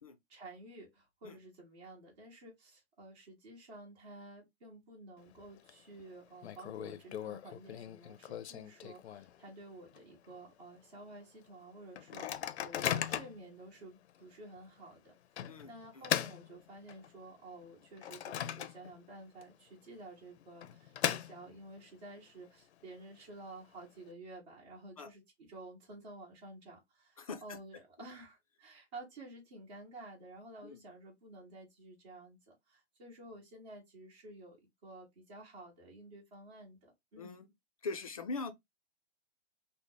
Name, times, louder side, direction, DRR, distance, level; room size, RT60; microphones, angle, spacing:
voice 1, 0.3-15.1 15.6-37.3, right 2 dB, 40° right, 1.4 m, -52 dB
Microwave oven, 5.2-5.7 6.0-6.1 6.4-9.5 9.9-10.0 10.3-10.6 11.1-11.2 12.0-13.5 14.1-14.2 15.4-17.2 17.6-19.1 19.4-19.5 20.4-21.8, left 10 dB, 85° left, 0.5 m, -38 dB
voice 2, 15.4-16.1 25.0-25.1 27.2-27.6 30.6-30.8 33.3-33.4 37.2-37.5 37.8-38.5, left 3 dB, 35° left, 0.4 m, -42 dB
3.3 x 2.0 x 3.8 m
hypercardioid pair, 175°, 32 cm